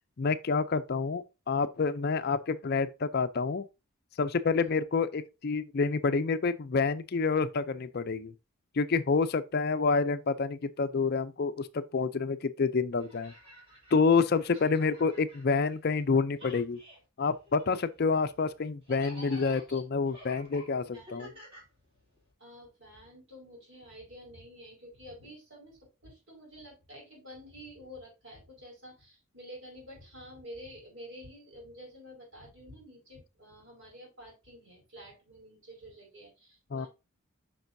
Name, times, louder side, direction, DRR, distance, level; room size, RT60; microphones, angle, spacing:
voice 1, 0.2-3.6 4.2-8.3 8.8-13.3 13.9-16.8 17.2-21.3 36.7-36.9, left 4 dB, 45° left, 0.4 m, -28 dB
sound 1, 12.9-16.1 16.3-22.3, equal, 25° right, 3.8 m, -51 dB
voice 2, 20.9-21.4 22.4-36.9, equal, 55° right, 5.0 m, -49 dB
9.0 x 5.9 x 2.6 m
head